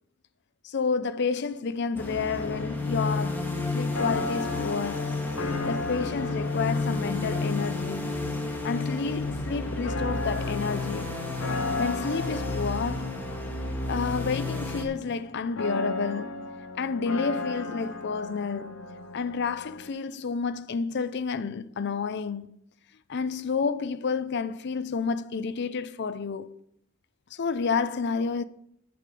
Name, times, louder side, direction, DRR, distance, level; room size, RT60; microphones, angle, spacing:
voice 1, 0.6-5.2 5.6-8.2 8.6-11.2 11.8-13.2 13.9-16.5 16.8-18.8 19.1-22.6 23.1-26.6 27.3-28.4, left 5 dB, 55° left, 0.5 m, -30 dB
sound 1, 2.0-14.8, left 2 dB, 10° left, 1.7 m, -31 dB
sound 2, 2.2-19.9, left 2 dB, 70° left, 1.0 m, -36 dB
8.6 x 7.6 x 6.8 m
head